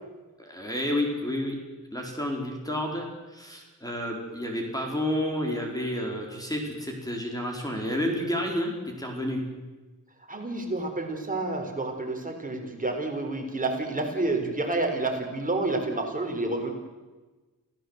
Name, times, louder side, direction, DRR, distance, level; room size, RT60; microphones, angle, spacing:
voice 1, 0.5-1.6 1.9-8.7 9.0-9.4, left 1 dB, 10° left, 1 dB, 4.2 m, -30 dB
voice 2, 10.3-16.7, right 2 dB, 25° right, 3 dB, 4.0 m, -29 dB
27.5 x 16.0 x 8.0 m, 1.2 s
wide cardioid pair, 130°, 31 cm